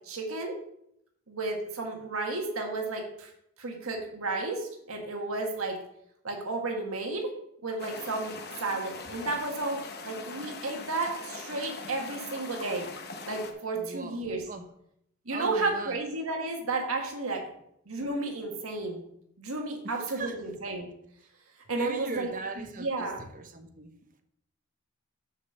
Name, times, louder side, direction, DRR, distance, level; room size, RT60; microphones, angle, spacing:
voice 1, 0.0-0.5 1.3-3.3 3.6-5.8 6.2-7.3 7.6-12.9 13.3-14.4 15.2-17.4 17.9-19.0 19.4-20.9 21.7-22.3 22.6-23.2, right 3 dB, 75° right, 2 dB, 1.6 m, -32 dB
sound 1, 7.8-13.5, left 4 dB, 45° left, 0.9 m, -42 dB
voice 2, 13.8-14.6 15.3-16.0 19.8-20.4 21.7-23.9, right 3 dB, 35° right, 6 dB, 0.9 m, -40 dB
6.5 x 5.1 x 6.9 m, 0.74 s
head